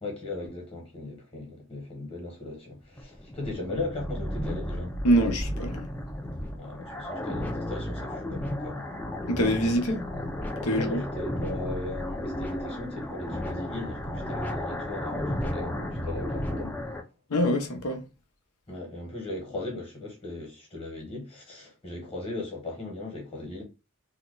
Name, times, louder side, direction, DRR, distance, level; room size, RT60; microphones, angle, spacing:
voice 1, 0.0-4.9 6.5-8.9 10.7-16.8 18.7-23.6, left 2 dB, 25° left, 1.1 m, -38 dB
sound 1, 2.8-17.0, left 1 dB, 5° left, 0.3 m, -33 dB
voice 2, 5.0-5.9 9.3-10.0 10.6-11.0 17.3-18.0, equal, 90° left, 0.8 m, -25 dB
2.9 x 2.2 x 3.8 m
head